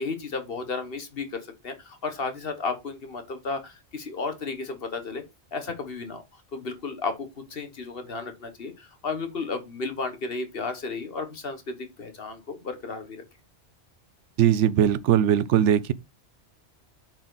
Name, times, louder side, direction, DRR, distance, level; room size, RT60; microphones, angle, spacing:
voice 1, 0.0-5.2 5.5-13.2, left 4 dB, 55° left, 1.4 m, -33 dB
voice 2, 14.4-15.9, right 10 dB, 85° right, 1.0 m, -20 dB
7.4 x 4.6 x 3.9 m
omnidirectional pair, 1.2 m